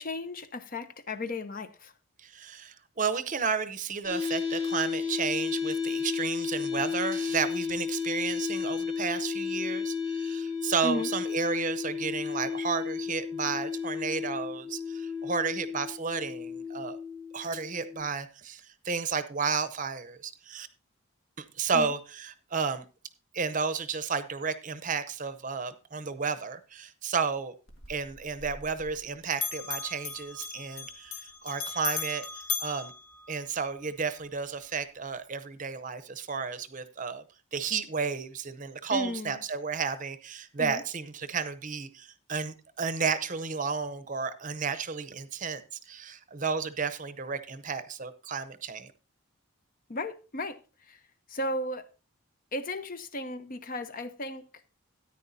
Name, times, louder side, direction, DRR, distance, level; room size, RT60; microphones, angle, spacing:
voice 1, 0.0-1.9 10.8-11.1 21.7-21.9 38.9-39.4 40.6-40.8 49.9-50.6 50.9-51.0 51.3-51.9 52.5-54.4, left 1 dB, 40° left, 0.7 m, -34 dB
voice 2, 2.2-17.0 17.3-20.7 21.4-22.9 23.3-27.5 27.9-32.3 32.6-32.9 33.3-37.2 37.5-48.9, right 5 dB, 40° right, 0.7 m, -32 dB
sound 1, 4.0-18.0, left 6 dB, 90° left, 6.0 m, -33 dB
Bell, 27.7-29.1 29.3-33.8, left 6 dB, 75° left, 1.9 m, -37 dB
13.5 x 9.7 x 2.7 m
head